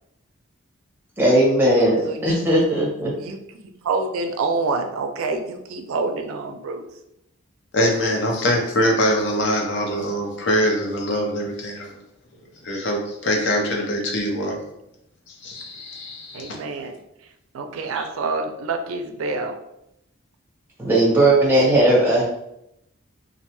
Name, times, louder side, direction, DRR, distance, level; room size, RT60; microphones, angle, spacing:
voice 1, 1.2-3.1 20.8-22.2, right 1 dB, 10° right, -5 dB, 0.7 m, -17 dB
voice 2, 2.1-2.4 3.2-3.4 3.8-6.9 16.3-16.9 17.5-19.6, right 3 dB, 85° right, 5 dB, 0.4 m, -27 dB
voice 3, 7.7-11.9 12.6-14.6 15.3-16.6 17.9-18.0, equal, 60° left, 0 dB, 0.5 m, -23 dB
2.4 x 2.2 x 2.9 m, 0.83 s
head